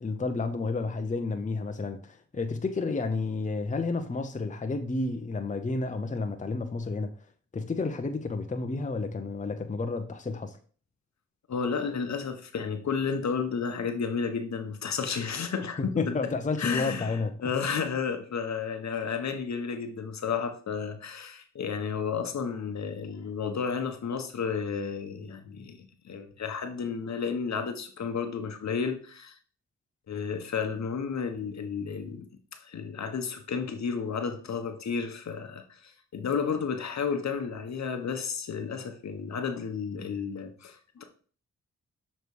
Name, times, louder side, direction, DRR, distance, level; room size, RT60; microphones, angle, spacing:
voice 1, 0.0-7.1 7.5-10.6 16.0-17.3, left 3 dB, 25° left, 0.7 m, -31 dB
voice 2, 11.5-16.3 16.6-29.4 30.1-32.3 32.5-41.0, left 6 dB, 65° left, 1.1 m, -32 dB
6.7 x 3.2 x 4.7 m
cardioid pair, 55°, 30 cm